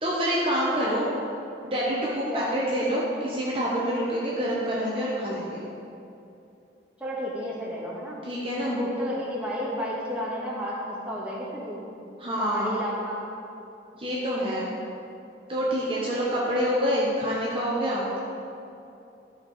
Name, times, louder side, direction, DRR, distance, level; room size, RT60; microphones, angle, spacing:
voice 1, 0.0-1.1 1.6-5.6 8.2-8.7 12.2-12.8 13.9-14.7 15.5-18.2, equal, 30° right, -6 dB, 1.1 m, -27 dB
voice 2, 0.7-1.0 2.3-2.5 7.0-8.2 8.6-11.9 12.4-13.2, equal, 5° right, -6 dB, 1.5 m, -32 dB
12.5 x 5.2 x 4.9 m, 2.7 s
head